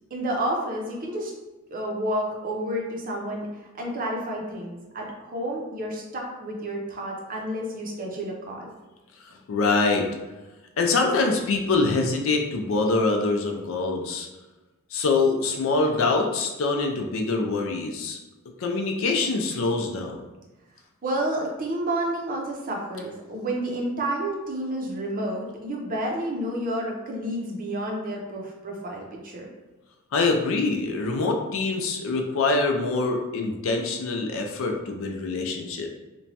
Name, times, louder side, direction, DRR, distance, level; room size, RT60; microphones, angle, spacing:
voice 1, 0.1-1.3 1.7-3.5 3.8-8.7 21.0-29.5, right 1 dB, 40° right, 0 dB, 0.6 m, -30 dB
voice 2, 9.5-10.1 10.8-14.3 14.9-18.2 18.6-20.2 30.1-36.0, left 3 dB, 70° left, 3 dB, 0.4 m, -24 dB
2.9 x 2.2 x 2.7 m, 1.1 s
head